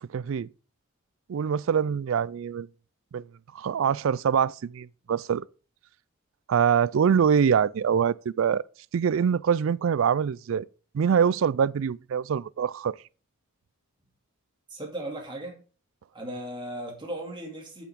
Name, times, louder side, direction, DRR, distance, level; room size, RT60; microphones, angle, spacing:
voice 1, 0.1-0.5 1.3-2.7 3.1-3.2 3.5-5.5 6.5-8.6 8.9-10.7 10.9-12.9, right 7 dB, 65° right, 0.3 m, -24 dB
voice 2, 14.7-15.6 16.1-17.8, right 1 dB, 20° right, 2.6 m, -36 dB
8.4 x 8.1 x 3.7 m
head